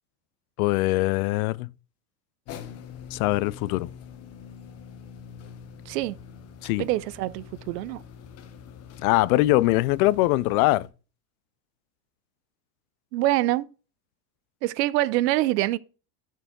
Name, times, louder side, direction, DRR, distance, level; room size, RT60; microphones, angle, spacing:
voice 1, 0.6-1.7 3.1-3.9 6.6-6.9 9.0-10.9, left 18 dB, 60° left, 0.5 m, -22 dB
sound 1, 2.5-10.9, left 7 dB, 30° left, 1.0 m, -44 dB
voice 2, 5.9-6.2 6.6-8.0 13.1-13.7 14.6-15.8, right 16 dB, 80° right, 0.7 m, -25 dB
12.5 x 4.7 x 3.7 m
supercardioid pair, 150°, 48 cm